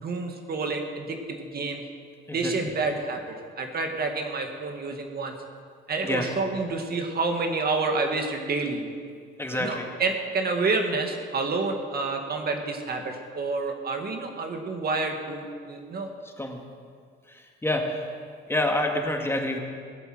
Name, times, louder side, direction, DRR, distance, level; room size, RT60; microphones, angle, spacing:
voice 1, 0.0-1.8 2.3-5.3 5.9-8.9 9.5-16.1, right 3 dB, 50° right, 4 dB, 1.9 m, -29 dB
voice 2, 9.4-9.9 16.4-16.6 17.3-18.1 18.5-19.6, left 1 dB, 10° left, 2 dB, 2.0 m, -27 dB
17.5 x 8.2 x 7.8 m, 2.1 s
cardioid pair, 90°, 20 cm